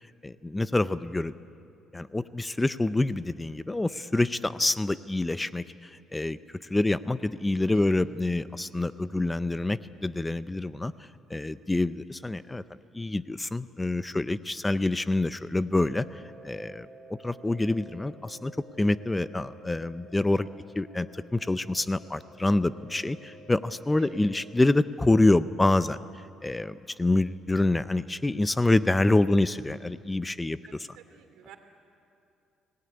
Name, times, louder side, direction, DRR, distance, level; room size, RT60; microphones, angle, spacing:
voice 1, 0.2-1.3 1.9-5.6 6.1-6.4 6.7-10.9 11.3-12.6 12.9-16.1 16.4-18.5 18.8-20.5 20.8-26.0 26.4-30.9, left 2 dB, 10° left, 15 dB, 0.5 m, -26 dB
sound 1, 15.7-24.5, right 1 dB, 55° left, 7.6 m, -52 dB
voice 2, 30.7-31.6, right 11 dB, 85° right, 7 dB, 2.6 m, -51 dB
24.5 x 18.0 x 9.7 m, 2.6 s
cardioid pair, 120°, 0 cm